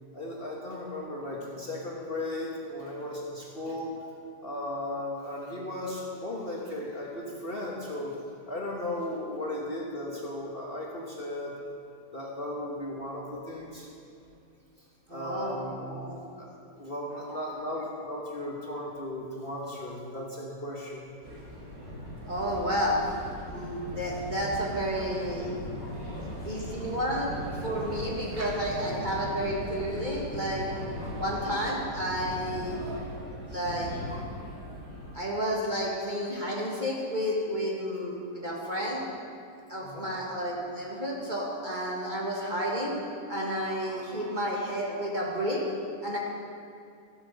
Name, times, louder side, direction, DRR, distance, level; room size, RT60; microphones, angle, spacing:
voice 1, 0.1-3.9 4.4-8.2 8.5-11.5 12.1-13.9 15.1-15.8 16.4-16.5 16.7-21.1 26.7-26.9 28.4-28.5 39.8-40.1, left 1 dB, 35° left, -3 dB, 1.5 m, -36 dB
voice 2, 15.1-16.2 17.1-17.4 22.3-23.0 23.5-25.5 25.8-26.0 26.4-32.8 33.5-34.4 35.1-39.0 39.7-42.9 43.3-45.6 46.0-46.2, equal, 25° right, -3 dB, 1.9 m, -31 dB
sound 1, 21.2-35.2, equal, 80° right, 3.3 m, -38 dB
14.0 x 8.5 x 6.7 m, 2.4 s
omnidirectional pair, 1.9 m